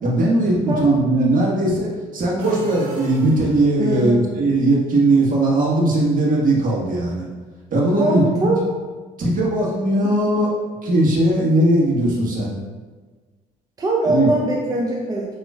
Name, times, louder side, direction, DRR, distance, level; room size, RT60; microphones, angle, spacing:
voice 1, 0.0-7.3 7.7-8.5 9.2-10.5 10.8-12.5 14.0-14.3, right 1 dB, 45° right, -3 dB, 1.5 m, -19 dB
sound 1, 2.4-4.0, right 2 dB, 70° right, 1.0 m, -35 dB
voice 2, 3.8-4.3 8.0-8.7 13.8-15.4, right 1 dB, 20° right, -3 dB, 0.8 m, -22 dB
6.9 x 3.0 x 2.4 m, 1.4 s
hypercardioid pair, 65°, 19 cm